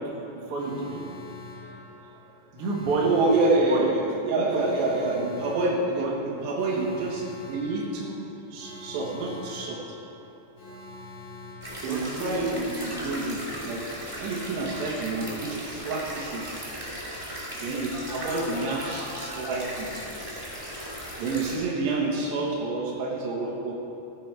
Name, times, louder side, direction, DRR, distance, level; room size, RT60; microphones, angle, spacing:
voice 1, 0.1-0.9 2.5-3.1 3.7-3.9 4.3-4.6 6.0-6.5 11.8-12.4 12.7-13.0 13.5-13.7 15.2-15.4 18.3-18.6 22.3-22.4, right 3 dB, 60° right, -2 dB, 1.5 m, -31 dB
Alarm, 0.6-12.5 17.9-19.5, left 2 dB, 40° left, 1.9 m, -45 dB
voice 2, 3.0-6.1 6.4-8.2 8.5-9.8 11.8-13.8 14.2-16.5 17.5-19.9 21.2-23.7, right 2 dB, 90° right, -3 dB, 3.5 m, -28 dB
sound 1, 11.6-21.6, equal, 10° right, 1.4 m, -37 dB
14.5 x 9.4 x 4.6 m, 2.9 s
omnidirectional pair, 4.7 m